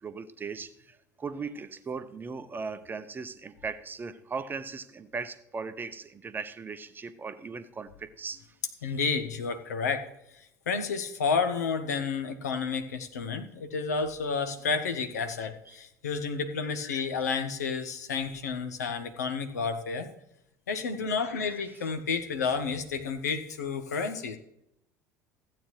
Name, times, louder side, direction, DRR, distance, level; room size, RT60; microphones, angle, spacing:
voice 1, 0.0-8.4 8.8-9.0, right 4 dB, 20° right, 12 dB, 0.8 m, -38 dB
voice 2, 8.8-10.1 10.3-20.1 20.7-24.4, left 5 dB, 70° left, 7 dB, 1.1 m, -31 dB
15.0 x 8.7 x 3.2 m, 0.79 s
figure-of-eight pair, 65°, 9 cm